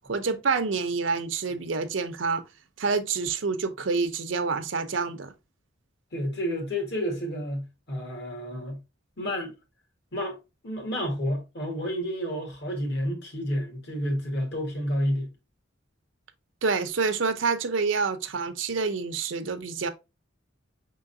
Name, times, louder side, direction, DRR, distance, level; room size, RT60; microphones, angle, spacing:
voice 1, 0.1-2.4 2.8-5.3 16.6-19.9, right 4 dB, 80° right, 0.7 m, -27 dB
voice 2, 6.1-8.8 9.2-9.5 10.1-10.4 10.6-15.3, equal, 60° left, 1.7 m, -30 dB
5.4 x 3.7 x 2.5 m
head